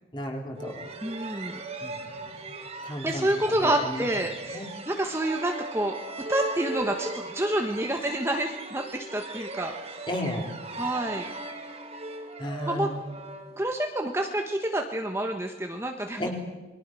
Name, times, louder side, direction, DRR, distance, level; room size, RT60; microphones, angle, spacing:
voice 1, 0.1-0.8 1.8-1.9 2.8-3.3 3.6-4.0 4.5-4.7 10.1-10.5 12.4-13.0 16.2-16.3, left 1 dB, 25° left, 1 dB, 4.1 m, -33 dB
sound 1, 0.6-14.1, right 2 dB, 30° right, 2.3 m, -38 dB
voice 2, 1.0-1.6 3.0-5.9 6.3-10.1 10.8-11.3 12.7-12.9 13.6-16.3, right 1 dB, 15° right, 3 dB, 1.2 m, -28 dB
28.5 x 22.0 x 6.3 m, 1.2 s
head